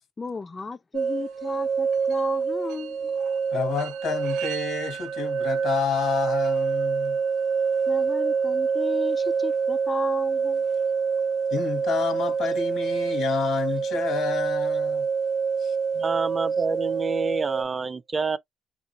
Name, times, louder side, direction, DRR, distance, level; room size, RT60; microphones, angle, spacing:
voice 1, 0.2-3.2 7.9-10.6, left 4 dB, 30° left, 0.3 m, -34 dB
sound 1, 0.9-17.6, right 5 dB, 85° right, 0.5 m, -26 dB
voice 2, 3.5-7.2 11.5-15.1 15.6-15.8, left 6 dB, 85° left, 1.2 m, -29 dB
voice 3, 15.9-18.4, right 4 dB, 35° right, 0.5 m, -28 dB
3.6 x 2.4 x 2.9 m
cardioid pair, 90°, 0 cm